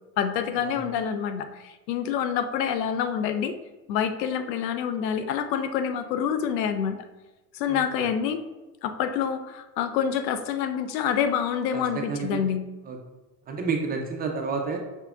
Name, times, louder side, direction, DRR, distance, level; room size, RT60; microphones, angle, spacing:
voice 1, 0.2-3.6 3.9-7.0 7.5-8.4 8.8-12.6, left 8 dB, 80° left, 9 dB, 0.6 m, -27 dB
voice 2, 7.7-8.1 11.7-12.4 12.9-13.0 13.5-14.8, right 4 dB, 20° right, 2 dB, 0.4 m, -30 dB
5.8 x 3.3 x 2.3 m, 1.1 s
hypercardioid pair, 95°, 50 cm